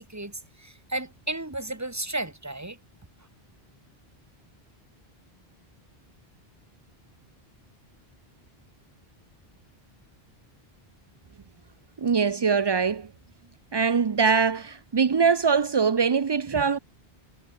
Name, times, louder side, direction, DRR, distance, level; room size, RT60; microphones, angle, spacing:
voice 1, 0.0-2.8, right 2 dB, 15° right, 1.5 m, -33 dB
voice 2, 12.0-13.1 13.7-16.8, right 5 dB, 35° right, 0.4 m, -22 dB
omnidirectional pair, 1.0 m